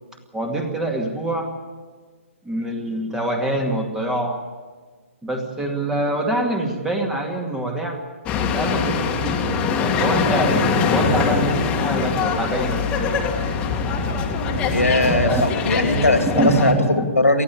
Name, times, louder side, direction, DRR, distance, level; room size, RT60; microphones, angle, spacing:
voice 1, 0.3-1.5 2.4-4.4 5.2-8.0 8.5-9.6 10.0-13.2 15.0-15.4 16.2-17.1, right 1 dB, 5° right, 3 dB, 2.2 m, -25 dB
sound 1, 8.3-16.7, left 5 dB, 15° left, 2.0 m, -22 dB
voice 2, 14.7-16.7 17.2-17.4, left 2 dB, 80° left, 7 dB, 2.8 m, -19 dB
19.5 x 14.0 x 10.0 m, 1.5 s
figure-of-eight pair, 130°, 8 cm